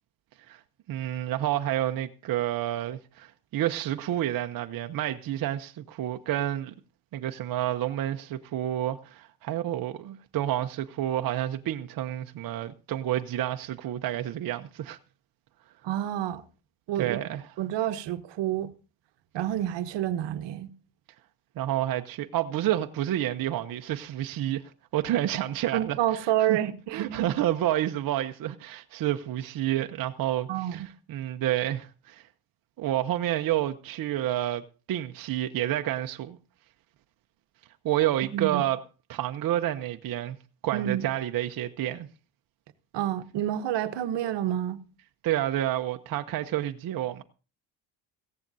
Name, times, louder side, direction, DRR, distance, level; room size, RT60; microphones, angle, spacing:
voice 1, 0.9-6.7 7.1-15.0 17.0-17.4 21.6-26.6 26.9-32.2 32.8-36.4 37.8-38.8 39.1-40.4 40.6-42.1 45.2-47.2, right 13 dB, 50° right, 0.7 m, -29 dB
voice 2, 15.8-16.4 16.9-17.2 17.6-18.7 19.3-20.7 25.7-27.3 30.5-30.9 38.3-38.6 40.7-41.1 42.9-44.8, right 12 dB, 65° right, 1.1 m, -28 dB
17.5 x 15.0 x 2.7 m
cardioid pair, 125°, 46 cm